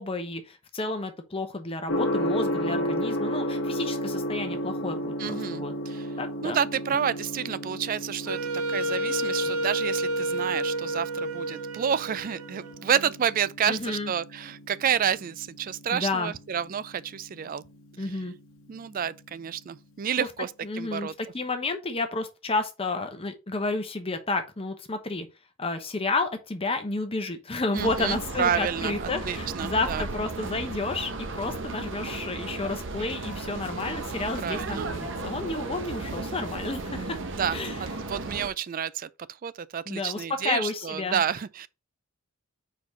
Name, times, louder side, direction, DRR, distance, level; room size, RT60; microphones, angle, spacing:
voice 1, 0.0-5.7 6.2-6.6 13.7-14.1 15.9-16.3 18.0-18.3 20.2-20.3 20.6-25.3 25.6-37.2 37.5-37.9 39.9-41.2, left 3 dB, 25° left, 1.0 m, -31 dB
Gong, 1.9-19.8, equal, 65° left, 1.1 m, -34 dB
voice 2, 5.2-6.1 6.4-17.6 18.7-21.1 27.7-28.9 29.2-30.0 34.4-34.9 37.4-39.1 39.4-41.7, right 8 dB, 40° right, 0.3 m, -29 dB
Wind instrument woodwind instrument, 8.2-13.2, right 1 dB, 90° right, 0.8 m, -30 dB
sound 1, 27.8-38.5, right 3 dB, 60° right, 0.8 m, -35 dB
4.7 x 4.1 x 5.2 m
head